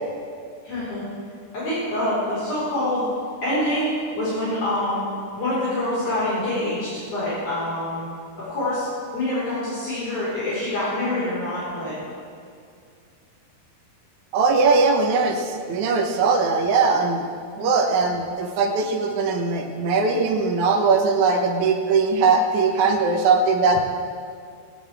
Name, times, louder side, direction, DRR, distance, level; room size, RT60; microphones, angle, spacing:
voice 1, 0.6-1.0 1.5-3.1 3.4-5.1 5.4-8.1 8.4-8.9 9.1-11.9 17.5-17.7, left 1 dB, 50° left, -12 dB, 6.1 m, -26 dB
voice 2, 14.3-17.2 17.6-23.8, right 4 dB, 60° right, 0 dB, 2.2 m, -20 dB
19.5 x 18.5 x 3.6 m, 2.3 s
omnidirectional pair, 4.5 m